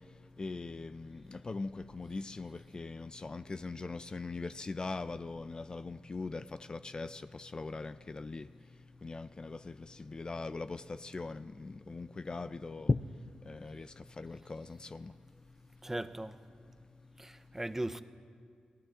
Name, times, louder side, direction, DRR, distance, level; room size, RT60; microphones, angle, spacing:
voice 1, 0.4-8.5 9.0-13.0 13.5-15.1, left 3 dB, 35° left, 12 dB, 0.4 m, -40 dB
voice 2, 15.8-16.3 17.2-18.0, right 1 dB, 15° right, 11 dB, 0.6 m, -38 dB
27.5 x 16.5 x 2.5 m, 2.1 s
cardioid pair, 65°, 3 cm